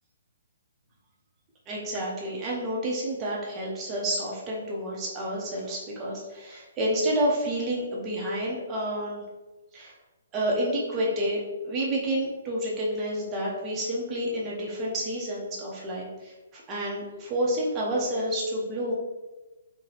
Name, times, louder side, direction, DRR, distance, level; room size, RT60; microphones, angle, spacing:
voice 1, 1.7-9.2 9.7-9.9 10.3-18.9, right 1 dB, 20° right, -4 dB, 0.7 m, -29 dB
3.9 x 2.2 x 2.9 m, 1.1 s
hypercardioid pair, 150°, 0 cm